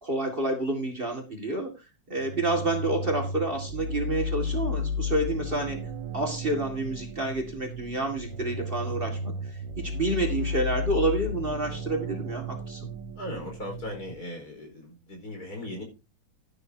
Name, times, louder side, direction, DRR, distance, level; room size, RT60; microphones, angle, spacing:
voice 1, 0.0-5.8 6.1-12.9, right 2 dB, 30° right, 2 dB, 2.3 m, -29 dB
sound 1, 2.2-14.1, left 2 dB, 80° right, 1.8 m, -34 dB
voice 2, 13.2-15.8, left 1 dB, 55° left, 1 dB, 5.3 m, -38 dB
12.0 x 12.0 x 2.8 m, 0.28 s
omnidirectional pair, 1.9 m